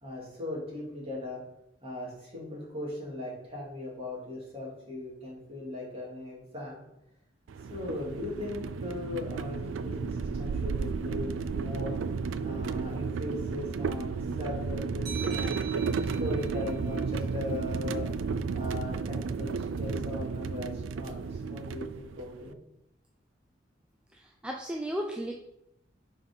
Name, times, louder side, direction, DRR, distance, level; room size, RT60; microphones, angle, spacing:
voice 1, 0.0-1.4 1.8-6.8 7.7-11.9 12.4-15.6 16.2-18.1 18.5-22.6, left 2 dB, 30° right, -4 dB, 2.5 m, -38 dB
sound 1, 7.5-22.5, right 5 dB, 85° right, 0.3 m, -33 dB
sound 2, 15.0-18.4, right 6 dB, 60° right, 2.1 m, -45 dB
voice 2, 24.1-25.3, equal, 5° right, 0 dB, 0.5 m, -35 dB
5.7 x 4.4 x 5.3 m, 0.83 s
head